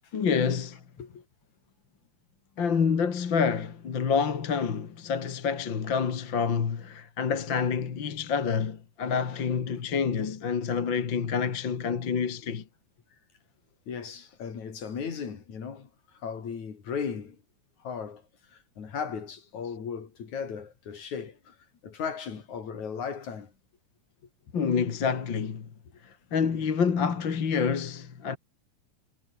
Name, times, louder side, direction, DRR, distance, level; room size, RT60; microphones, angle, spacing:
voice 1, 0.1-0.8 2.6-12.6 24.5-25.7 26.0-28.4, left 6 dB, 45° left, 2.5 m, -28 dB
voice 2, 13.9-17.4 17.8-18.2 18.5-21.6 21.8-23.5, left 6 dB, 75° left, 4.7 m, -36 dB
omnidirectional pair, 3.4 m